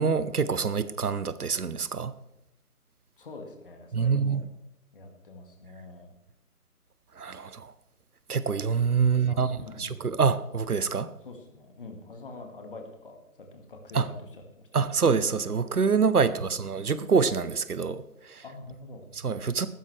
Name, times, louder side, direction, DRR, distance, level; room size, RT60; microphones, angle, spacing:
voice 1, 0.0-2.1 3.9-4.4 7.2-7.7 8.3-11.1 13.9-14.1 14.7-18.4 19.2-19.7, right 5 dB, 75° right, 15 dB, 0.8 m, -26 dB
voice 2, 3.2-4.4 4.9-6.1 9.0-10.0 11.2-14.4 16.2-16.6 18.4-19.1, left 3 dB, 35° left, 4 dB, 1.8 m, -45 dB
14.5 x 12.5 x 3.2 m, 0.90 s
figure-of-eight pair, 150°, 46 cm